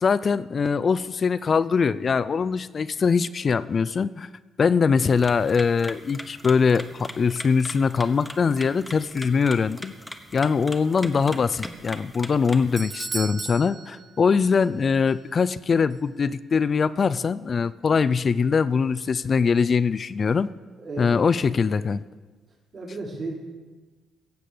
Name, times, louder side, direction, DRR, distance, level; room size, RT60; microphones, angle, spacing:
voice 1, 0.0-4.3 4.6-9.9 10.3-20.5 21.0-22.0, left 5 dB, 40° left, 16 dB, 0.4 m, -22 dB
sound 1, 5.1-12.8, equal, 5° left, 1.2 m, -41 dB
Doorbell, 12.3-14.8 15.1-15.2 15.9-16.0, right 4 dB, 35° right, 0.5 m, -36 dB
voice 2, 20.8-21.9 22.7-23.4, right 2 dB, 55° right, -4 dB, 4.9 m, -35 dB
16.5 x 6.8 x 7.7 m, 1.3 s
cardioid pair, 90°, 0 cm